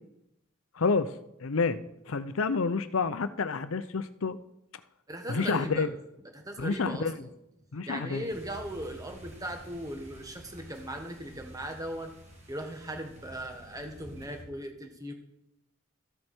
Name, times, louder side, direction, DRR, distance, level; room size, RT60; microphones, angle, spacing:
voice 1, 0.8-1.1 1.4-1.8 2.1-4.4 5.3-5.9 6.6-7.3 7.7-8.3, left 4 dB, 80° left, 13 dB, 0.7 m, -29 dB
voice 2, 5.1-5.9 6.3-7.3 7.9-12.1 12.5-15.1, right 1 dB, 15° right, 4 dB, 1.5 m, -38 dB
sound 1, 8.3-14.4, equal, 35° right, 2.2 m, -50 dB
13.5 x 7.8 x 4.5 m, 0.83 s
head